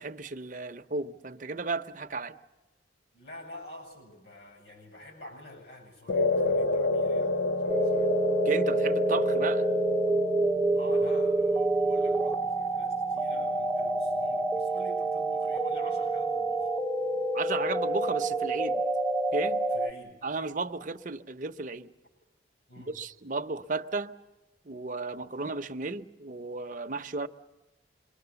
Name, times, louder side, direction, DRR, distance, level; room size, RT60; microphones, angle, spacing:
voice 1, 0.0-2.4 8.4-9.7 17.3-18.8 19.3-19.6 20.2-21.9 22.8-24.1 24.6-27.3, right 3 dB, 45° right, 0.7 m, -34 dB
voice 2, 3.1-7.4 7.6-8.1 10.7-16.7 19.7-20.2 22.7-23.0, left 1 dB, 60° left, 7.9 m, -48 dB
sound 1, 6.1-14.6, left 2 dB, 90° left, 0.8 m, -31 dB
sound 2, 7.7-19.9, right 2 dB, ahead, 0.9 m, -27 dB
27.0 x 22.5 x 7.0 m
head